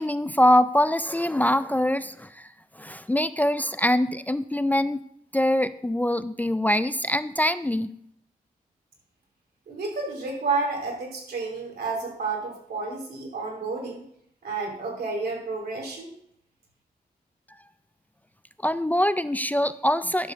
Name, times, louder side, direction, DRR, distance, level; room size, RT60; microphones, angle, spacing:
voice 1, 0.0-2.5 2.8-5.0 5.3-7.9 18.6-20.3, left 1 dB, 10° left, 13 dB, 0.3 m, -23 dB
voice 2, 9.7-14.0 14.4-16.1, right 4 dB, 85° right, 0 dB, 3.0 m, -30 dB
11.0 x 4.4 x 6.2 m, 0.70 s
wide cardioid pair, 115°, 16 cm